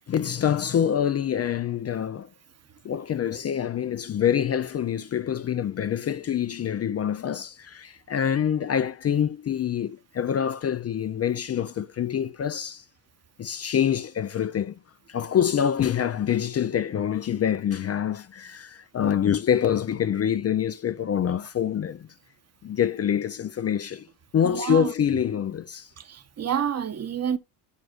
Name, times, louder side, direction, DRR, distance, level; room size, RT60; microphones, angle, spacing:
voice 1, 0.1-2.3 2.8-12.8 13.4-14.8 15.1-22.1 22.6-24.1 24.3-25.9, left 9 dB, 35° left, 0.5 m, -26 dB
voice 2, 24.4-24.9 26.0-27.4, right 8 dB, 35° right, 0.9 m, -28 dB
12.5 x 4.8 x 2.4 m
cardioid pair, 100°, 42 cm